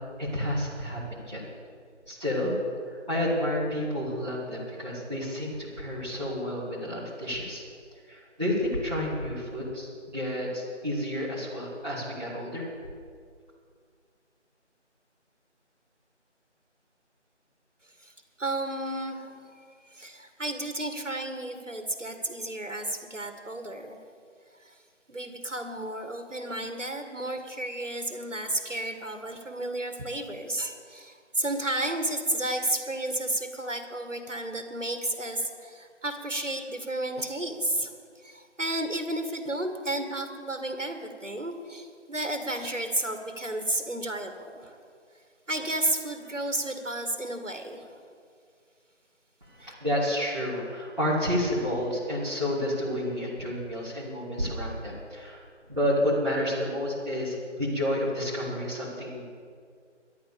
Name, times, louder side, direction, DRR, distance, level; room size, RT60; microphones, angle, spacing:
voice 1, 0.2-1.4 2.1-2.6 2.9-7.6 8.1-12.7 49.4-55.4 55.7-59.2, left 1 dB, 35° right, -12 dB, 3.1 m, -30 dB
voice 2, 18.0-24.0 24.6-24.8 25.1-38.0 38.2-44.8 45.5-48.1 49.6-49.7, right 1 dB, 85° right, 6 dB, 2.1 m, -32 dB
13.0 x 11.0 x 7.0 m, 2.2 s
figure-of-eight pair, 175°, 36 cm